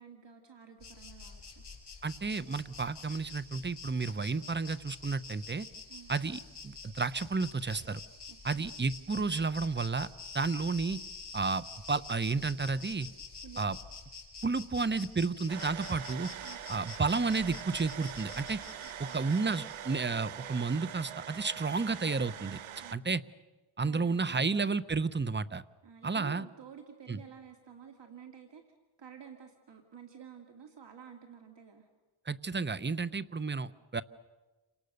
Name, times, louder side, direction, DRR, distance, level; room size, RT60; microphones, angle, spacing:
voice 1, 0.0-1.6 5.9-6.1 8.3-8.7 13.4-13.8 16.4-16.6 18.8-19.3 22.8-23.1 23.8-24.8 25.8-28.6 29.0-31.9, right 7 dB, 60° right, 4 dB, 2.2 m, -51 dB
Insect, 0.8-20.0, left 4 dB, 55° left, 6.2 m, -48 dB
voice 2, 2.0-5.7 6.1-8.0 8.4-10.1 10.3-11.0 11.3-13.1 13.6-13.8 14.4-16.3 16.7-18.6 19.0-22.6 22.9-23.2 23.8-25.6 26.0-26.5 27.1-27.2 32.3-34.0, right 4 dB, 25° right, 15 dB, 0.9 m, -32 dB
sound 1, 15.5-23.0, right 9 dB, 90° right, 1.0 m, -43 dB
29.0 x 26.0 x 6.6 m, 1.2 s
cardioid pair, 75°, 48 cm